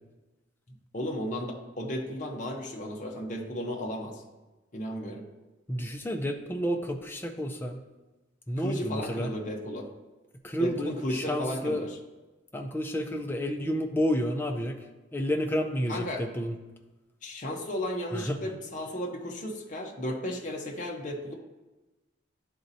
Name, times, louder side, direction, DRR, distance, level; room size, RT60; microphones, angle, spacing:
voice 1, 0.9-4.2 4.7-5.2 8.6-9.9 10.6-12.0 15.9-16.2 17.2-21.3, equal, 40° left, 1 dB, 0.7 m, -34 dB
voice 2, 5.7-7.8 8.5-9.3 10.4-11.9 12.5-14.7 15.1-16.6 18.1-18.4, equal, 10° left, 4 dB, 0.4 m, -30 dB
10.0 x 4.0 x 2.7 m, 1.1 s
head